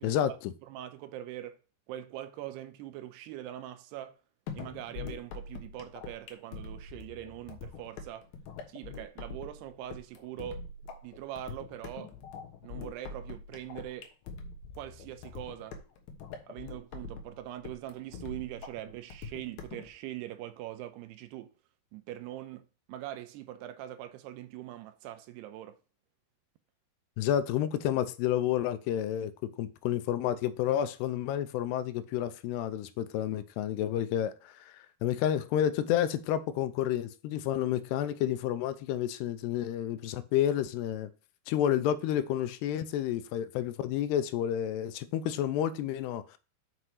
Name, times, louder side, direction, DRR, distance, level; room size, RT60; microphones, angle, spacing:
voice 1, 0.0-0.5 27.2-34.6 35.0-41.1 41.5-46.4, left 11 dB, 85° left, 2.7 m, -30 dB
voice 2, 0.7-1.6 1.9-4.2 4.5-8.3 8.7-10.6 11.0-12.1 12.6-14.1 14.8-15.8 16.5-21.5 21.9-25.8, right 13 dB, 85° right, 2.7 m, -42 dB
sound 1, 4.5-19.9, left 5 dB, 70° left, 2.9 m, -43 dB
6.7 x 6.0 x 4.7 m
omnidirectional pair, 4.7 m